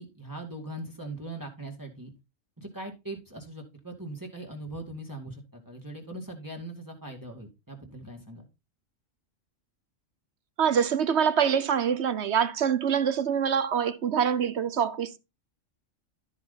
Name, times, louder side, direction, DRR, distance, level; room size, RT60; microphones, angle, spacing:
voice 1, 0.0-2.1 2.6-8.5, right 1 dB, 15° right, 2.2 m, -40 dB
voice 2, 10.6-15.2, right 8 dB, 60° right, 1.1 m, -25 dB
13.0 x 4.9 x 4.0 m
omnidirectional pair, 1.3 m